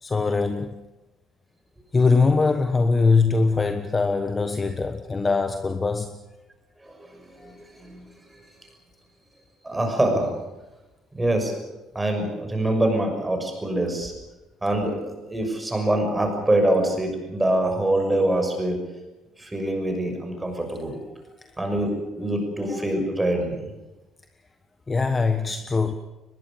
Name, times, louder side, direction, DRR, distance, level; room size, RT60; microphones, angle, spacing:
voice 1, 0.0-0.8 1.9-6.2 7.4-7.6 21.4-21.7 24.9-25.9, left 4 dB, 20° left, 1.2 m, -22 dB
voice 2, 9.6-10.3 11.1-11.5 11.9-14.1 14.6-18.8 19.4-21.0 21.6-23.7, right 1 dB, 10° right, 6.3 m, -24 dB
23.5 x 21.0 x 6.9 m
cardioid pair, 155°, 0 cm